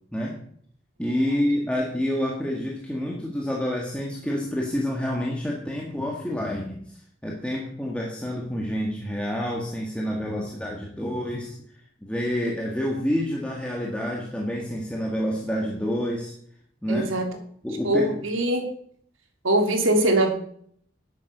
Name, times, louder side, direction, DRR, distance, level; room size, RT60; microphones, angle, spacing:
voice 1, 1.0-11.5 12.0-16.3 16.8-17.1 17.6-18.1, equal, 5° left, -2 dB, 1.7 m, -28 dB
voice 2, 16.9-17.3 17.8-18.7 19.4-20.3, right 1 dB, 85° right, 4 dB, 2.8 m, -22 dB
11.0 x 9.1 x 6.8 m, 0.63 s
head